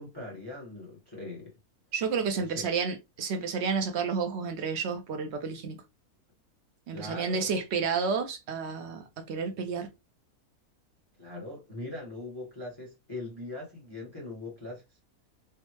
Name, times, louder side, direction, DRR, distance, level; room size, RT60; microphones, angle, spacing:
voice 1, 0.0-1.5 2.3-2.7 6.9-7.5 11.2-14.8, left 2 dB, 15° left, 1.1 m, -41 dB
voice 2, 1.9-5.8 6.9-9.9, right 5 dB, 65° right, 0.7 m, -31 dB
3.5 x 2.1 x 3.0 m
omnidirectional pair, 1.6 m